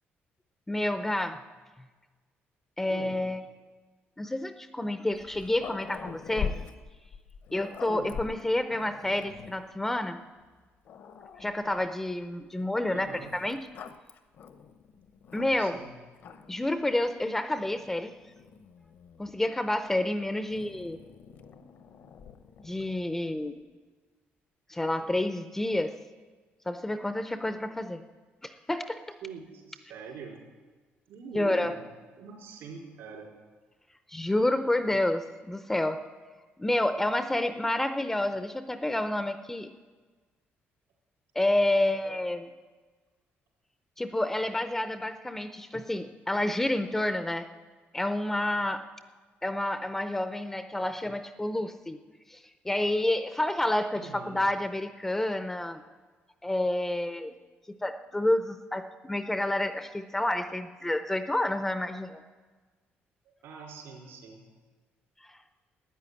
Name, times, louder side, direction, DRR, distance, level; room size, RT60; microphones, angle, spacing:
voice 1, 0.7-1.4 2.8-3.4 4.2-6.5 7.5-10.2 11.4-13.6 15.3-15.8 16.5-18.1 19.2-21.0 22.6-23.6 24.7-25.9 26.7-28.0 28.4-29.0 31.3-31.7 34.1-36.0 36.6-39.7 41.4-42.5 44.0-47.5 47.9-48.8 49.4-52.0 52.3-52.4 52.6-55.8 56.4-57.3 57.8-62.2 65.3-65.4, left 1 dB, 10° left, 10 dB, 0.5 m, -29 dB
Growling, 5.1-9.7 10.4-10.5 10.9-11.9 13.0-15.8 16.2-16.7 17.6-19.4 20.5-23.0, left 7 dB, 50° left, 0.8 m, -42 dB
voice 2, 7.8-8.2 12.9-13.3 15.6-16.0 29.2-30.4 31.1-31.9 32.1-33.3 53.9-54.4 63.4-64.5, right 5 dB, 75° right, 0 dB, 4.3 m, -43 dB
13.0 x 9.8 x 9.7 m, 1.4 s
cardioid pair, 175°, 4 cm